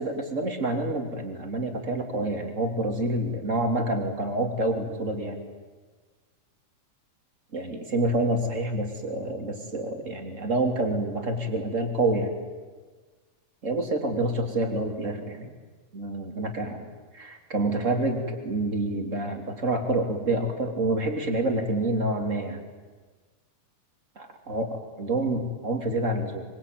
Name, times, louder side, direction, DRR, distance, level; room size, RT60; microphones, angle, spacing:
voice 1, 0.0-5.4 7.5-12.3 13.6-15.5 15.9-16.9 17.1-22.6 24.1-26.4, right 2 dB, 25° right, 5 dB, 3.3 m, -27 dB
24.5 x 24.5 x 9.4 m, 1.4 s
omnidirectional pair, 3.6 m